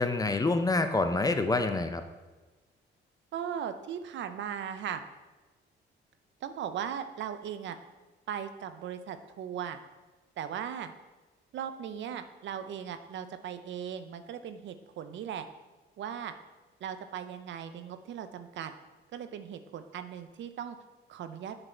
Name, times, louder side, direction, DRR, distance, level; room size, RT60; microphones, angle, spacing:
voice 1, 0.0-2.0, left 3 dB, 20° left, 8 dB, 0.5 m, -27 dB
voice 2, 3.3-5.0 6.4-7.8 8.3-9.8 10.4-10.9 11.5-15.5 16.0-16.3 16.8-18.7 19.1-20.8 21.1-21.6, right 8 dB, 70° right, 9 dB, 0.6 m, -38 dB
7.7 x 4.0 x 4.4 m, 1.2 s
cardioid pair, 90°, 20 cm